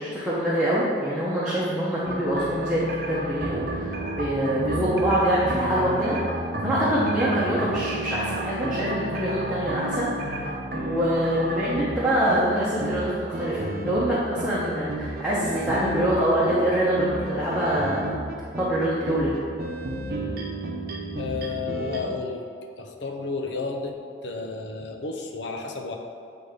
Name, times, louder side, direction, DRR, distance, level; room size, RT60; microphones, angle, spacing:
voice 1, 0.0-10.1 10.4-18.0 18.6-19.3, right 1 dB, 5° right, -9 dB, 0.9 m, -25 dB
sound 1, 2.0-22.0, right 1 dB, 50° right, 0.7 m, -32 dB
voice 2, 21.2-22.4 22.8-26.0, left 4 dB, 75° left, 3 dB, 0.7 m, -32 dB
8.2 x 3.5 x 5.0 m, 2.4 s
head